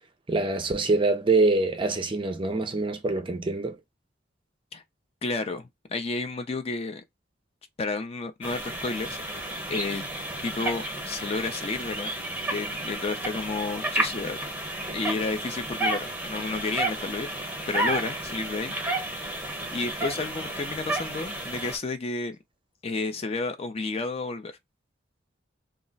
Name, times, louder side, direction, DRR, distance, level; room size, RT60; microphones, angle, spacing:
voice 1, 0.3-3.8, right 3 dB, 25° right, 0.5 m, -25 dB
voice 2, 5.2-7.0 7.8-10.0 10.4-12.1 12.5-14.4 14.9-17.3 17.7-18.7 19.7-22.4 22.8-24.5, left 3 dB, 30° left, 0.4 m, -31 dB
sound 1, 8.4-21.8, right 1 dB, 10° right, 0.9 m, -32 dB
2.4 x 2.0 x 3.8 m
head